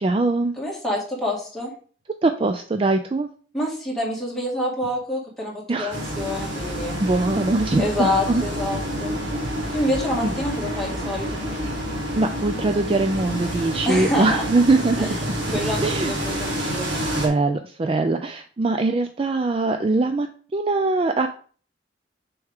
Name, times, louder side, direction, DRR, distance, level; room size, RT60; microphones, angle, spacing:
voice 1, 0.0-0.5 2.2-3.3 5.7-6.0 7.0-8.4 10.2-10.4 12.1-15.1 15.8-16.1 17.1-20.3 20.5-21.3, right 3 dB, 30° right, 6 dB, 0.4 m, -22 dB
voice 2, 0.6-1.7 3.5-7.0 7.8-9.2 9.7-11.4 13.8-14.4 15.0-15.1 15.5-16.9, left 1 dB, ahead, -4 dB, 2.0 m, -27 dB
sound 1, 5.9-17.3, equal, 90° right, 1.9 m, -28 dB
6.4 x 4.6 x 3.6 m, 0.43 s
head